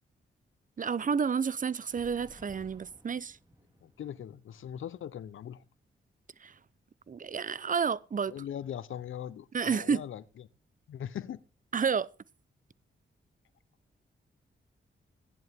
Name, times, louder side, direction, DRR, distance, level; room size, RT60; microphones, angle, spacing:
voice 1, 0.8-3.4 6.4-6.5 7.1-8.3 9.5-10.0 11.7-12.1, right 6 dB, 40° right, 0.7 m, -30 dB
sound 1, 1.8-5.6, right 1 dB, 20° right, 3.9 m, -58 dB
voice 2, 3.8-5.6 8.3-10.2 10.9-11.4, left 10 dB, 80° left, 0.8 m, -40 dB
16.0 x 11.0 x 3.6 m
cardioid pair, 60°, 20 cm